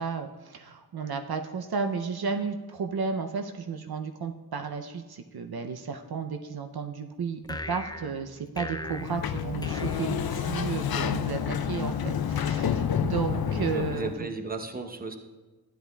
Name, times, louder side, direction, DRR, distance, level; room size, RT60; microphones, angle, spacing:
voice 1, 0.0-14.1, right 5 dB, 70° right, 6 dB, 0.6 m, -33 dB
sound 1, 7.4-10.9, left 2 dB, 10° left, 0.4 m, -40 dB
Sliding door, 8.8-14.2, left 8 dB, 70° left, 0.5 m, -29 dB
voice 2, 13.5-15.2, right 3 dB, 25° right, 5 dB, 0.8 m, -35 dB
13.5 x 10.0 x 2.3 m, 1.3 s
wide cardioid pair, 70°, 39 cm